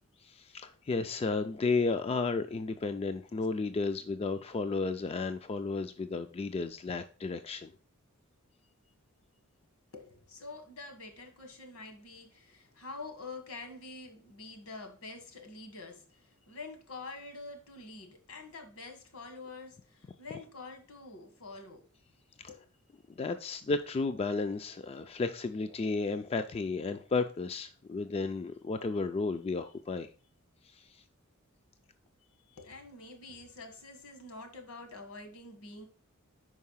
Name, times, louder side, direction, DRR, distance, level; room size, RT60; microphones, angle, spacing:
voice 1, 0.2-7.7 22.4-22.5 23.2-30.1 30.7-31.0, left 3 dB, 25° left, 0.3 m, -33 dB
voice 2, 9.9-21.9 22.5-22.7 32.6-35.9, left 3 dB, 75° left, 1.5 m, -46 dB
5.3 x 4.7 x 5.6 m
head